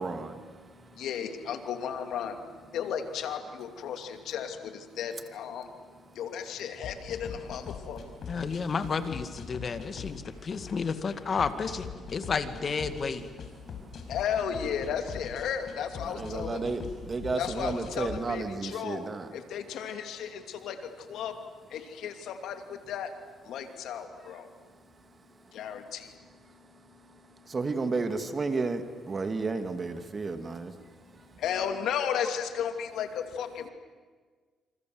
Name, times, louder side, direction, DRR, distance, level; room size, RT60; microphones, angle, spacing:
voice 1, 0.0-0.4 16.2-19.3 27.5-30.7, right 3 dB, 35° right, 2.5 m, -32 dB
voice 2, 0.5-5.7 6.1-8.0 13.2-13.3 13.6-16.7 17.3-19.0 19.3-21.4 21.7-23.1 23.4-24.5 25.5-26.1 31.4-33.7, left 8 dB, 80° left, 2.6 m, -34 dB
sound 1, 6.8-18.2, left 6 dB, 60° left, 5.2 m, -42 dB
voice 3, 8.3-13.3, left 5 dB, 45° left, 2.2 m, -31 dB
28.0 x 26.5 x 8.0 m
cardioid pair, 90°, 0 cm